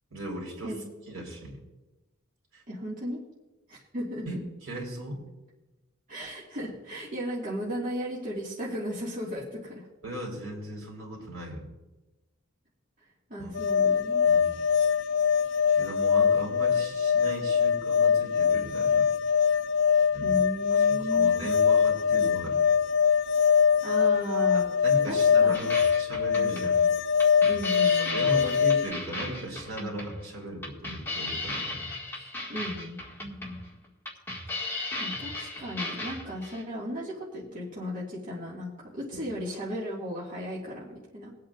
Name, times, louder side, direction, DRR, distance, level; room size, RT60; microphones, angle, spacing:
voice 1, 0.1-0.7 1.1-1.6 2.5-2.6 4.3-5.2 10.0-11.7 13.4-13.5 14.3-14.5 15.8-19.1 20.1-20.4 20.7-22.6 24.5-26.8 28.0-31.7 32.2-32.3 33.2-33.4 39.1-39.2, right 1 dB, 70° right, -2 dB, 3.9 m, -37 dB
voice 2, 2.7-3.2 3.7-4.2 6.1-9.9 13.3-14.3 20.2-21.5 23.8-24.7 25.1-25.7 27.4-28.2 32.5-33.0 35.0-38.7 39.0-41.3, equal, 40° right, -6 dB, 2.1 m, -35 dB
sound 1, 13.5-28.9, left 7 dB, 60° left, 0.4 m, -23 dB
sound 2, 25.5-36.6, left 2 dB, 10° left, 2.0 m, -36 dB
23.0 x 8.6 x 2.5 m, 1.1 s
head